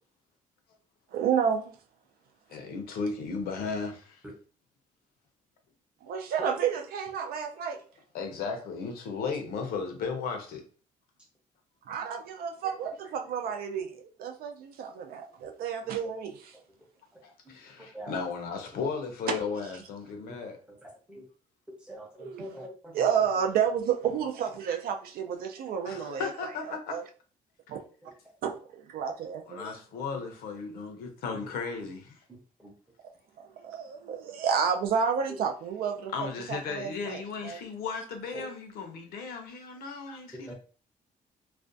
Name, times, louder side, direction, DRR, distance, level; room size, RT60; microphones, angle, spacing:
voice 1, 1.1-1.7 6.0-7.8 11.9-16.5 19.3-19.4 22.2-22.6 22.9-26.3 26.7-27.0 27.7-27.8 28.4-29.6 33.4-36.1 36.5-37.6, right 7 dB, 85° right, 0.5 m, -30 dB
voice 2, 2.5-4.2 8.1-10.6 17.2-20.6 25.8-27.0 29.5-32.2 36.1-40.5, left 5 dB, 85° left, 0.6 m, -35 dB
voice 3, 17.8-18.1 20.2-20.4 20.8-21.2 21.8-23.3 28.0-28.1 29.6-29.7 30.1-30.2 31.3-31.5 32.3-32.7 35.3-35.4 38.3-38.4 40.5-40.6, right 1 dB, 5° right, 0.6 m, -44 dB
2.4 x 2.2 x 2.5 m
cardioid pair, 175°, 15 cm